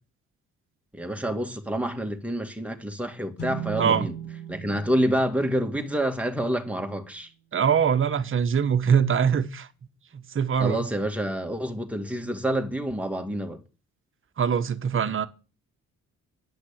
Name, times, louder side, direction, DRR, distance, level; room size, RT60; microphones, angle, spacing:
voice 1, 0.9-4.1 4.5-7.3 10.6-13.6, equal, 5° right, 2.1 m, -28 dB
sound 1, 3.4-6.9, right 7 dB, 50° left, 3.7 m, -39 dB
voice 2, 7.5-9.7 10.1-10.9 14.4-15.3, right 7 dB, 45° right, 1.2 m, -23 dB
10.5 x 6.0 x 8.8 m
cardioid pair, 90°, 30 cm